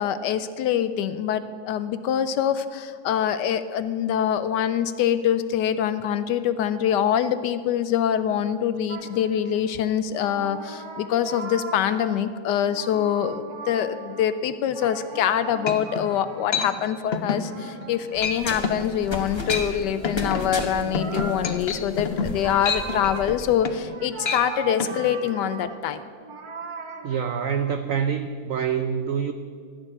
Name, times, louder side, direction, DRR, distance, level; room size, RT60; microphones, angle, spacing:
voice 1, 0.0-26.0, left 9 dB, 75° left, 12 dB, 1.1 m, -25 dB
sound 1, 8.9-9.7 10.1-12.4 12.7-16.9 17.3-28.0, right 4 dB, 55° right, 1.4 m, -40 dB
sound 2, 15.2-15.3 15.7-16.1 16.5-16.7 17.1-17.4 17.8-17.9 18.2-18.4 18.6-18.9 19.3-19.7 20.0-23.9 24.2-24.4 24.8-24.9, left 5 dB, 50° left, 0.7 m, -28 dB
sound 3, 18.1-23.3, left 2 dB, 20° left, 1.0 m, -34 dB
voice 2, 27.0-29.3, right 7 dB, 85° right, 8 dB, 0.7 m, -26 dB
13.0 x 6.8 x 9.8 m, 2.1 s
omnidirectional pair, 2.1 m